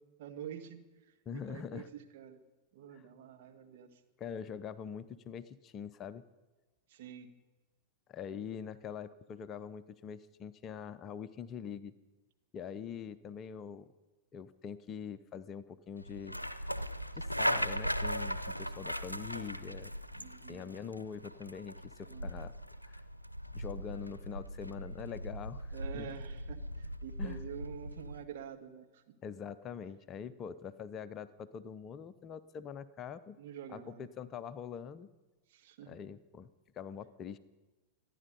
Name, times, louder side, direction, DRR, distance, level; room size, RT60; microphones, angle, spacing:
voice 1, 0.2-0.8 1.1-2.4 2.7-4.0 6.9-7.3 20.1-20.7 22.1-22.4 25.7-29.1 33.4-34.1 35.5-36.0, right 9 dB, 55° right, 5 dB, 1.5 m, -47 dB
voice 2, 1.3-1.9 2.9-3.1 4.2-6.2 8.1-11.9 12.5-13.9 14.3-16.4 17.1-19.9 20.5-22.5 22.8-23.0 23.5-26.1 27.2-27.4 29.2-33.4 33.7-35.1 35.9-36.5 36.7-37.4, left 7 dB, 30° left, 14 dB, 0.6 m, -44 dB
sound 1, 16.0-28.2, equal, 85° left, 0.6 m, -39 dB
26.0 x 10.0 x 5.4 m, 1.2 s
figure-of-eight pair, 90°, 0 cm